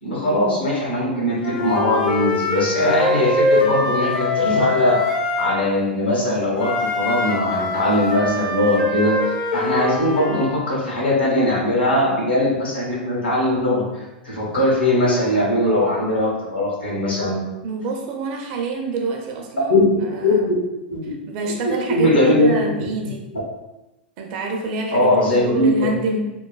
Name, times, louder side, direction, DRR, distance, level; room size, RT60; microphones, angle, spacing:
voice 1, 0.0-5.0 5.4-9.1 9.5-17.4 19.7-19.8 20.2-20.5 20.9-21.0 21.9-22.5 24.9-25.9, left 1 dB, 80° left, -5 dB, 1.1 m, -20 dB
Wind instrument woodwind instrument, 1.4-5.6 6.6-10.5, left 2 dB, 50° left, 0.6 m, -23 dB
voice 2, 17.6-20.4 21.3-23.3 24.2-26.2, right 3 dB, 45° right, 1 dB, 0.5 m, -27 dB
3.0 x 2.1 x 2.3 m, 0.97 s
figure-of-eight pair, 95°, 6 cm